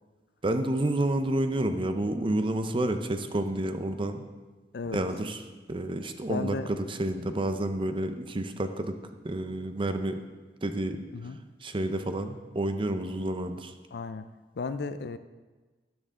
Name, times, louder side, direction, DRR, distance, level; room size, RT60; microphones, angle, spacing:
voice 1, 0.4-4.2 4.9-5.4 5.7-9.0 9.2-10.2 10.6-11.0 11.6-13.7, right 1 dB, 30° right, 8 dB, 0.6 m, -29 dB
voice 2, 4.7-5.1 6.3-6.7 11.1-11.4 13.9-14.3 14.6-15.2, left 4 dB, 60° left, 12 dB, 0.4 m, -34 dB
12.0 x 10.5 x 3.7 m, 1.3 s
head